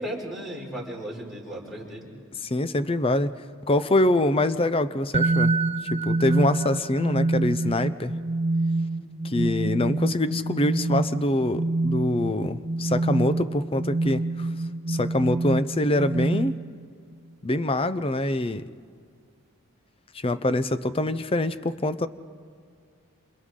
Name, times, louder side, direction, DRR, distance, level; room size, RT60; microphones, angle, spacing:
voice 1, 0.0-2.1, equal, ahead, -3 dB, 5.2 m, -35 dB
voice 2, 2.4-3.3 3.7-5.5 5.9-8.1 9.2-14.5 14.9-16.6 17.4-18.7 20.1-22.1, left 1 dB, 25° left, 12 dB, 0.6 m, -24 dB
sound 1, 5.1-16.9, right 2 dB, 30° right, 0.5 m, -27 dB
28.0 x 28.0 x 3.8 m, 2.2 s
head